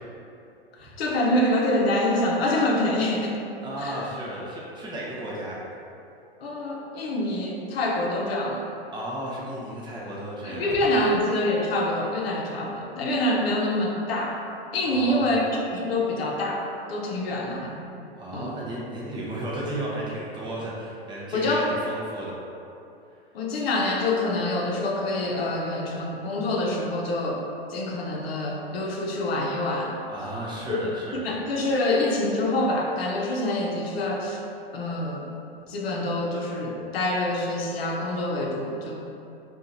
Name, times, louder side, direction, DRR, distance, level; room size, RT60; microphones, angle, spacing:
voice 1, 0.8-3.4 3.8-4.0 6.4-8.6 10.4-14.4 14.7-16.6 16.9-17.7 18.3-18.5 21.3-21.7 23.3-27.4 27.7-29.9 30.7-30.8 31.2-34.4 34.7-35.3 35.7-39.0, left 1 dB, 75° left, -1 dB, 0.7 m, -26 dB
voice 2, 3.6-5.6 8.9-11.1 14.8-15.4 18.2-22.4 30.1-31.4, right 1 dB, 15° right, -6 dB, 0.4 m, -34 dB
2.7 x 2.4 x 3.8 m, 2.7 s
hypercardioid pair, 110°, 30 cm